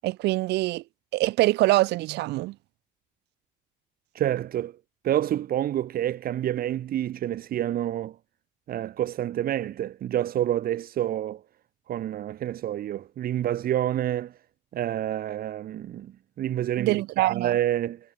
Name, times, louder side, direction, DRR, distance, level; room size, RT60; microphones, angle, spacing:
voice 1, 0.0-0.8 1.1-2.5 16.8-17.6, right 19 dB, 85° right, 2.5 m, -24 dB
voice 2, 4.1-4.8 5.0-8.2 8.7-11.4 11.9-14.3 14.7-18.0, right 12 dB, 60° right, 2.8 m, -28 dB
cardioid pair, 110°, 17 cm